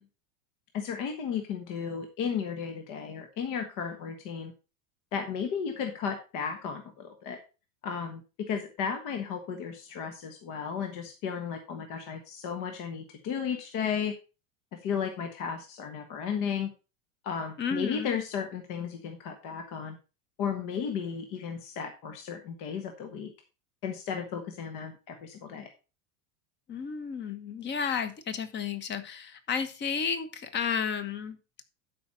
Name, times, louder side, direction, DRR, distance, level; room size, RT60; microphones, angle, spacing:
voice 1, 0.7-4.5 5.1-7.4 7.8-8.2 8.5-14.1 14.7-16.7 17.2-20.0 20.4-23.3 23.8-25.7, left 7 dB, 50° left, 5 dB, 1.4 m, -34 dB
voice 2, 17.6-18.1 26.7-31.4, left 6 dB, 25° left, 11 dB, 1.1 m, -32 dB
12.0 x 5.1 x 4.2 m, 0.32 s
supercardioid pair, 145°, 41 cm